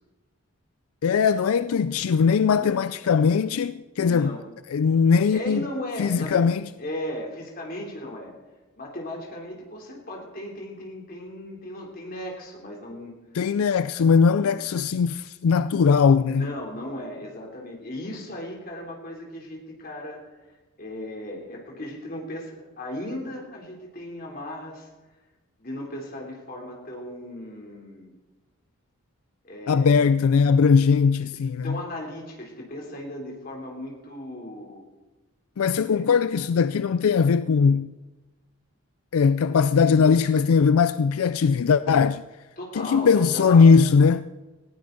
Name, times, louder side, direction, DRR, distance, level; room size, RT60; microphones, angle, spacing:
voice 1, 1.0-4.3 4.7-5.6 6.0-6.6 13.3-16.5 29.7-31.8 35.6-37.9 39.1-42.2 42.8-44.3, left 5 dB, 85° left, 0.4 m, -20 dB
voice 2, 2.5-2.8 4.0-4.5 5.3-6.5 6.8-8.3 8.8-13.1 14.4-14.5 16.2-20.2 20.8-24.9 25.6-28.1 29.4-30.1 31.6-34.8 35.8-36.0 42.6-43.7, left 1 dB, 40° left, 3.4 m, -36 dB
19.0 x 15.5 x 4.0 m
head